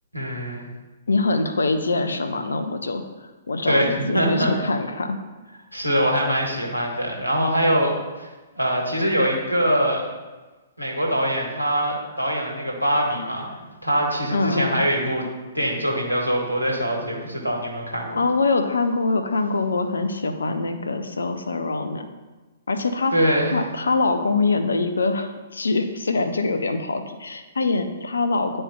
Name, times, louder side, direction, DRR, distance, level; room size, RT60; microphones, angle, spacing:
voice 1, 0.1-0.7 3.7-4.5 5.7-7.9 8.2-8.3 8.5-10.1 10.8-13.5 13.8-15.2 15.5-18.2 23.1-23.6, equal, 90° left, 0 dB, 1.4 m, -23 dB
voice 2, 1.1-3.0 3.5-5.2 14.3-14.8 18.1-22.1 22.7-23.1 23.5-28.6, left 3 dB, 70° left, 6 dB, 0.6 m, -24 dB
10.5 x 4.4 x 2.2 m, 1.2 s
figure-of-eight pair, 120°, 0 cm